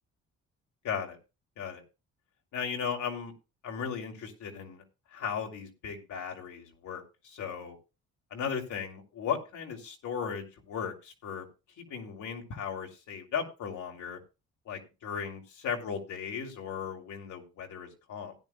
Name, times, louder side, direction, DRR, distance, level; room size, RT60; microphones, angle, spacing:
voice 1, 0.8-1.2 1.6-1.8 2.5-3.3 3.6-4.8 5.1-7.8 8.3-11.5 11.8-14.2 14.7-18.3, left 7 dB, 75° left, 2 dB, 3.1 m, -36 dB
16.5 x 10.5 x 2.3 m, 0.29 s
cardioid pair, 90°, 30 cm